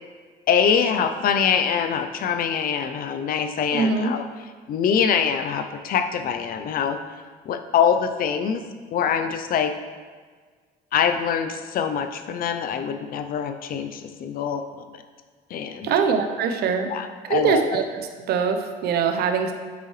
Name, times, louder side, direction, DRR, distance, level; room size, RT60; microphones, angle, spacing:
voice 1, 0.5-4.3 4.7-7.0 7.5-8.6 8.9-9.7 10.9-14.6 14.9-15.0 15.5-15.9 16.8-17.8, left 7 dB, 60° left, 8 dB, 0.6 m, -24 dB
voice 2, 3.7-4.1 15.8-16.9 17.3-17.8 18.3-19.5, right 6 dB, 70° right, 6 dB, 0.8 m, -22 dB
8.9 x 5.5 x 3.3 m, 1.5 s
cardioid pair, 110°, 17 cm